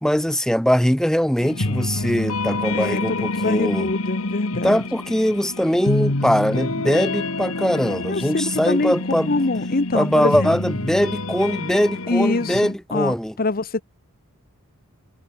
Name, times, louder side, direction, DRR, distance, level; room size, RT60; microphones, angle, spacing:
voice 1, 0.0-3.9 4.6-9.4 9.9-13.3, equal, 5° left, 1.2 m, -21 dB
sound 1, 1.4-12.7, left 2 dB, 75° left, 2.1 m, -27 dB
voice 2, 2.7-4.8 8.1-8.9 9.3-10.5 12.1-13.8, left 3 dB, 45° left, 0.9 m, -24 dB
head